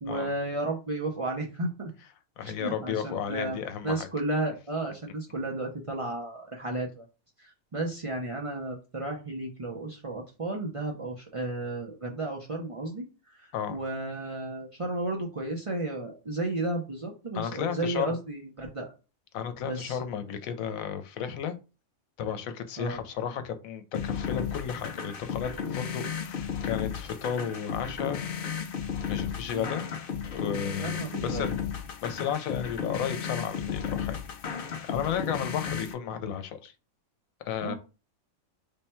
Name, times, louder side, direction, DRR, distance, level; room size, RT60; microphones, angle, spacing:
voice 1, 0.0-1.9 2.4-7.1 7.4-13.0 13.4-18.9 19.6-20.0 22.8-23.0 29.5-29.7 30.8-31.5 37.6-37.7, right 2 dB, 50° right, 0.4 m, -33 dB
voice 2, 2.4-4.1 13.5-13.8 17.3-18.1 19.3-21.6 22.2-28.2 29.1-30.0 30.3-31.0 31.2-31.5 32.0-34.2 34.8-36.7 37.4-37.7, left 8 dB, 80° left, 1.0 m, -33 dB
sound 1, 23.9-35.9, left 7 dB, 60° left, 0.6 m, -34 dB
3.4 x 2.2 x 4.2 m
omnidirectional pair, 1.4 m